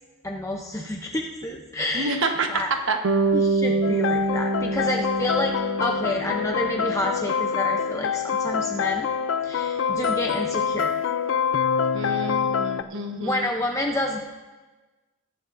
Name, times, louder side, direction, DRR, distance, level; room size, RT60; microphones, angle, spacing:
voice 1, 0.2-2.2 2.5-2.7 3.3-9.1 9.4-10.9 13.2-14.2, left 1 dB, 15° left, 1 dB, 0.6 m, -29 dB
voice 2, 1.9-3.0 11.9-13.5, right 3 dB, 55° right, 4 dB, 1.2 m, -28 dB
Bass guitar, 3.0-7.2, right 3 dB, 80° right, 1.0 m, -26 dB
sound 1, 3.8-12.8, left 7 dB, 55° left, 0.4 m, -26 dB
22.0 x 11.0 x 2.6 m, 1.2 s
head